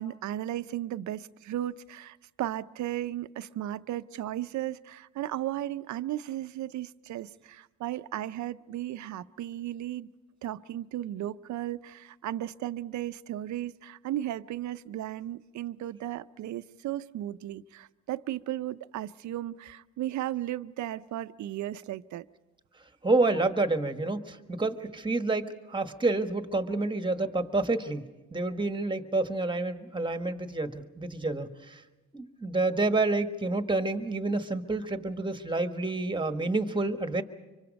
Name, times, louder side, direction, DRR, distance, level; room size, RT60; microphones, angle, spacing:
voice 1, 0.0-10.1 10.4-22.2, right 13 dB, 70° right, 14 dB, 0.6 m, -35 dB
voice 2, 23.0-31.8 32.1-37.2, right 2 dB, 15° right, 8 dB, 1.4 m, -29 dB
25.5 x 24.0 x 5.3 m, 1.1 s
cardioid pair, 90°, 30 cm